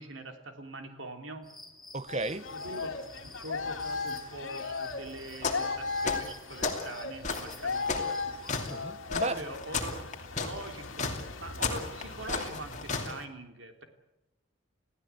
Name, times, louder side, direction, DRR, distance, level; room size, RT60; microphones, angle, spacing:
voice 1, 0.0-1.5 2.5-2.9 3.4-8.1 9.3-10.0 10.3-10.9 11.4-13.8, right 2 dB, 65° right, 3.3 m, -43 dB
sound 1, 1.4-8.8, left 2 dB, ahead, 2.8 m, -52 dB
voice 2, 1.9-2.5 8.7-9.4, right 3 dB, 30° right, 0.8 m, -33 dB
sound 2, 2.1-13.2, left 4 dB, 70° left, 2.4 m, -37 dB
sound 3, 5.4-5.7 6.0-6.9 7.2-13.1, left 4 dB, 35° left, 2.8 m, -33 dB
28.0 x 16.5 x 8.4 m
head